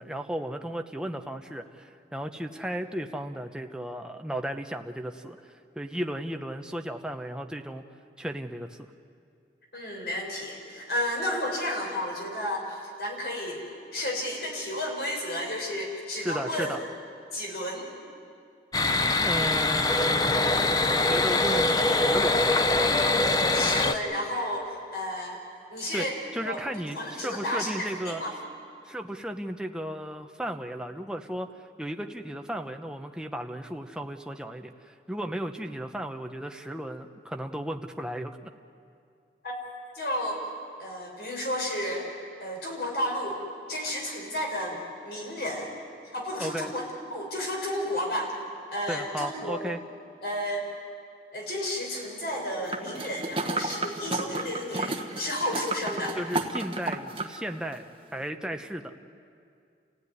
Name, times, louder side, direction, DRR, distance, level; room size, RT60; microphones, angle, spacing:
voice 1, 0.0-7.8 8.2-8.9 16.2-16.8 19.2-20.6 20.8-22.9 25.9-26.1 26.3-28.2 28.9-31.5 31.8-38.5 46.4-46.7 48.9-49.8 56.1-57.8 58.1-59.1, equal, 5° right, 4 dB, 0.9 m, -35 dB
voice 2, 9.7-13.6 13.9-16.8 17.3-17.9 23.5-25.4 25.7-26.1 26.4-26.6 26.9-28.3 39.4-39.5 39.9-40.4 40.8-42.1 42.4-43.4 43.7-45.7 46.1-48.3 48.7-49.6 50.2-50.6 51.3-56.2, left 1 dB, 65° left, 0 dB, 6.1 m, -32 dB
sound 1, 18.7-23.9, left 2 dB, 20° left, 0.7 m, -23 dB
sound 2, 52.7-57.4 57.7-57.8, right 2 dB, 30° right, 1.3 m, -32 dB
29.5 x 16.0 x 9.7 m, 2.4 s
head